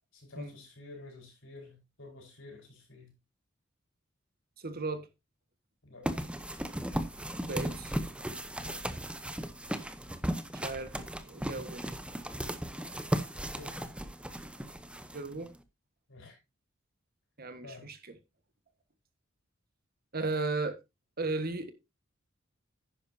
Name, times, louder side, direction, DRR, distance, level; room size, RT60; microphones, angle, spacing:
voice 1, 0.1-3.1 5.8-6.2 8.6-8.8 13.5-13.9 16.1-16.4 17.6-17.9, left 3 dB, 65° left, 5.1 m, -50 dB
voice 2, 4.6-5.1 7.4-7.9 10.5-11.9 15.1-15.5 17.4-18.0 20.1-20.8 21.2-21.7, right 3 dB, 50° right, 1.5 m, -35 dB
sound 1, 6.0-15.6, equal, 5° right, 0.8 m, -36 dB
11.0 x 9.8 x 2.7 m
head